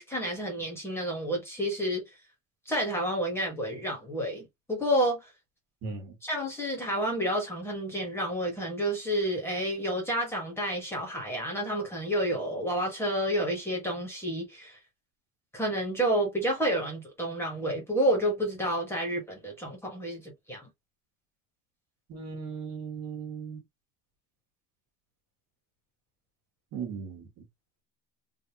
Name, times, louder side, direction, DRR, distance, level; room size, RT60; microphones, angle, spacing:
voice 1, 0.0-2.0 2.6-5.3 6.2-14.8 15.5-20.7, equal, 5° left, 1.3 m, -30 dB
voice 2, 5.8-6.1 22.1-23.6 26.7-27.3, right 5 dB, 50° right, 1.4 m, -37 dB
3.4 x 2.6 x 2.8 m
cardioid pair, 170°, 34 cm